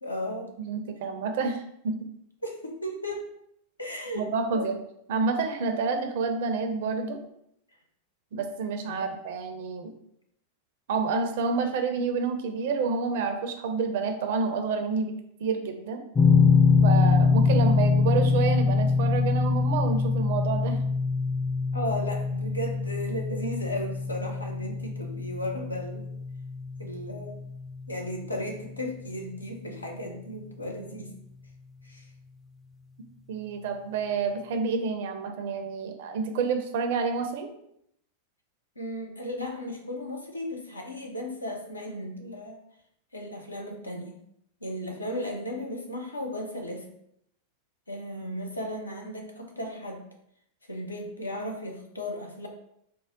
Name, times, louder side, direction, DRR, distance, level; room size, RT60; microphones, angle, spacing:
voice 1, 0.0-0.5 2.4-3.3 3.8-4.3 4.5-4.7 8.9-9.0 17.5-17.6 21.7-26.1 26.8-27.4 27.9-31.1 31.8-32.0 38.8-42.6 43.1-44.2 44.6-46.9 47.9-50.0 50.7-52.5, left 1 dB, 80° left, 2 dB, 0.6 m, -35 dB
voice 2, 0.6-2.0 4.1-4.8 5.1-7.2 8.3-9.9 10.9-15.1 15.4-16.0 16.8-20.8 33.3-37.5, right 4 dB, 55° right, 6 dB, 0.5 m, -29 dB
sound 1, 16.2-29.1, left 4 dB, 15° left, 0.4 m, -24 dB
3.7 x 2.0 x 3.7 m, 0.74 s
figure-of-eight pair, 90°, 0 cm